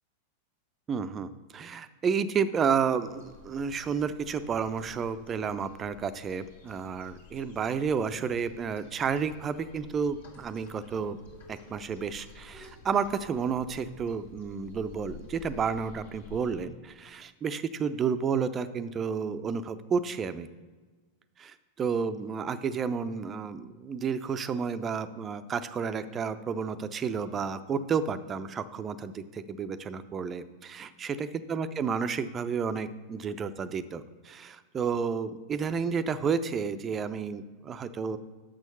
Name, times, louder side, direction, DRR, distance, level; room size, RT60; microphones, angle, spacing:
voice 1, 0.9-11.2 11.5-20.5 21.4-38.2, right 6 dB, 25° right, 12 dB, 0.4 m, -31 dB
sound 1, 3.1-16.6, left 5 dB, 70° left, 1.7 m, -52 dB
6.3 x 6.2 x 5.4 m, 1.4 s
figure-of-eight pair, 90°, 0 cm